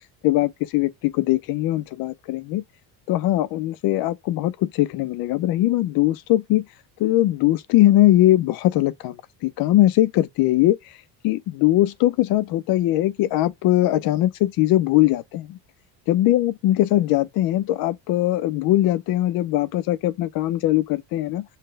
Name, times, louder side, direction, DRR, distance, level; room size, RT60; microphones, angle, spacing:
voice 1, 0.2-2.6 3.1-6.6 7.0-9.2 9.4-10.8 11.2-15.6 16.1-21.4, left 15 dB, 60° left, 0.6 m, -20 dB
5.6 x 2.2 x 3.3 m
cardioid pair, 145°, 41 cm